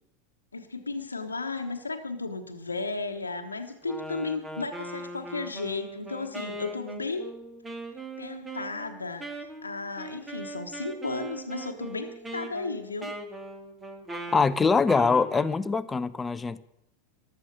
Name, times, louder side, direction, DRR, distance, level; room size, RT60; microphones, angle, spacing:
voice 1, 0.5-7.3 8.2-9.2 9.6-13.1, left 3 dB, 90° left, 4 dB, 1.2 m, -34 dB
Wind instrument woodwind instrument, 3.8-15.6, right 1 dB, 15° right, 2.3 m, -40 dB
voice 2, 14.3-16.6, left 4 dB, 15° left, 14 dB, 0.8 m, -23 dB
14.5 x 11.5 x 6.6 m, 0.81 s
figure-of-eight pair, 85°, 0 cm